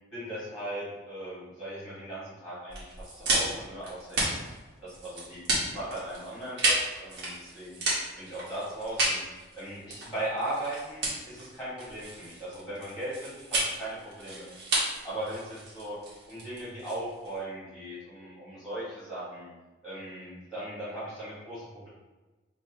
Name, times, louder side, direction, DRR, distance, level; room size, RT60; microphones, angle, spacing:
voice 1, 0.1-4.2 4.8-7.8 8.2-9.2 9.5-14.5 15.0-16.0 16.3-19.5 19.8-21.9, right 1 dB, ahead, -10 dB, 1.3 m, -38 dB
sound 1, 2.7-17.4, right 2 dB, 55° right, 1.2 m, -32 dB
5.8 x 2.1 x 2.8 m, 1.2 s
head